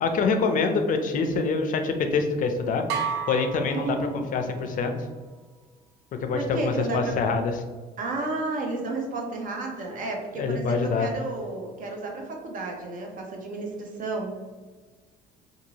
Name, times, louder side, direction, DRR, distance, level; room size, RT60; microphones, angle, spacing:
voice 1, 0.0-2.8 3.3-4.0 4.3-4.9 6.2-7.5 10.4-11.1, left 4 dB, 50° left, 6 dB, 0.4 m, -25 dB
sound 1, 2.9-4.7, right 6 dB, 85° right, 0.5 m, -32 dB
voice 2, 3.6-4.2 6.3-7.3 8.0-14.4, right 2 dB, 50° right, 1 dB, 0.7 m, -32 dB
2.6 x 2.6 x 2.9 m, 1.4 s
cardioid pair, 110°, 17 cm